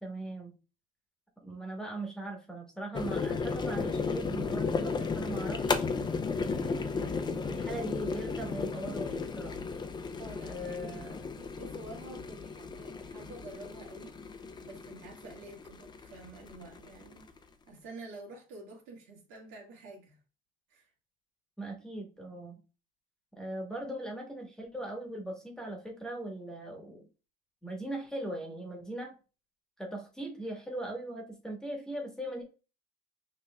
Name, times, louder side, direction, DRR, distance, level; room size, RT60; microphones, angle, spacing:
voice 1, 0.0-0.5 1.4-5.9 6.5-9.5 10.4-11.3 21.6-22.6 23.3-27.1 27.6-29.1 29.8-32.4, right 1 dB, 5° left, 1.3 m, -40 dB
sound 1, 2.9-17.4, left 4 dB, 20° left, 0.5 m, -35 dB
voice 2, 10.1-11.1 11.4-17.2 17.7-20.2 20.7-20.9, right 2 dB, 75° right, 1.8 m, -49 dB
5.8 x 3.1 x 2.3 m
supercardioid pair, 100°, 20 cm